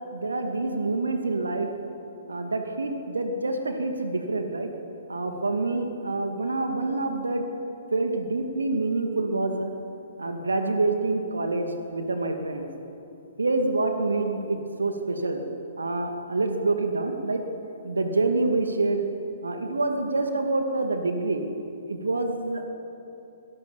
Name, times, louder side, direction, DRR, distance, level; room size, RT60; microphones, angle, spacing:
voice 1, 0.1-1.7 2.3-4.7 5.1-7.4 7.9-9.7 10.2-12.7 13.4-15.4 15.8-17.4 17.8-19.0 19.4-21.4 21.9-22.7, right 2 dB, 75° right, 5 dB, 2.4 m, -27 dB
25.5 x 18.0 x 7.2 m, 2.9 s
figure-of-eight pair, 125°, 0 cm